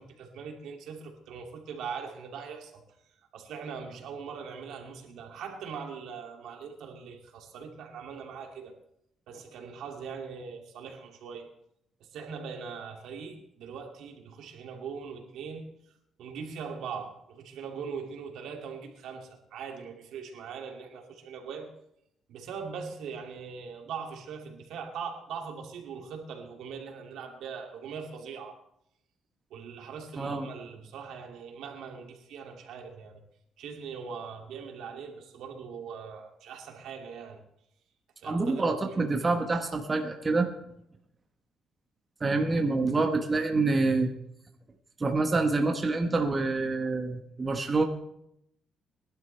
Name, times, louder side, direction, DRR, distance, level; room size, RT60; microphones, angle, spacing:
voice 1, 0.0-2.8 3.3-8.7 9.3-11.5 12.0-15.7 16.2-21.7 22.3-28.5 29.5-33.2 33.6-37.4 38.2-39.0, right 6 dB, 80° right, 2 dB, 2.6 m, -41 dB
voice 2, 38.2-40.5 42.2-44.1 45.0-47.8, right 3 dB, 25° right, 3 dB, 1.4 m, -26 dB
21.5 x 12.0 x 3.4 m, 0.77 s
cardioid pair, 110°, 0 cm